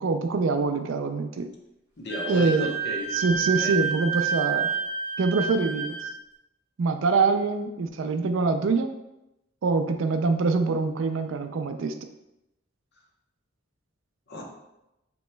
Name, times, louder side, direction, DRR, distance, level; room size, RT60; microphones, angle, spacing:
voice 1, 0.0-1.4 2.3-2.7 3.1-4.7 5.2-6.0 6.8-8.9 9.6-11.9, right 4 dB, 70° right, 7 dB, 0.4 m, -24 dB
voice 2, 2.0-3.1 3.6-3.8 14.3-14.4, left 1 dB, 55° left, -1 dB, 0.8 m, -34 dB
Wind instrument woodwind instrument, 2.1-6.1, right 6 dB, 15° right, 1.0 m, -29 dB
6.1 x 3.0 x 2.2 m, 0.90 s
head